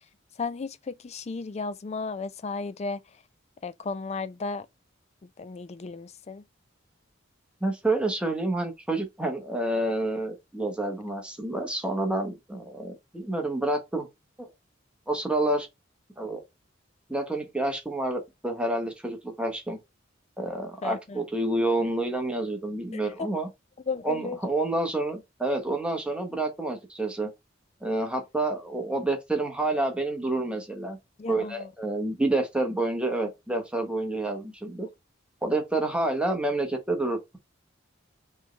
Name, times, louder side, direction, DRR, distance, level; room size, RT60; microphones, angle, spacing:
voice 1, 0.4-3.0 3.6-4.7 5.4-6.4 20.8-21.2 22.9-23.3 23.9-24.4 31.2-31.7, left 4 dB, 35° left, 0.4 m, -34 dB
voice 2, 7.6-14.1 14.4-14.5 15.1-15.7 16.2-16.4 17.1-19.8 20.4-23.5 24.0-27.3 27.8-31.0 31.3-34.9 35.4-37.4, right 2 dB, 5° right, 0.9 m, -28 dB
4.5 x 3.2 x 3.1 m
head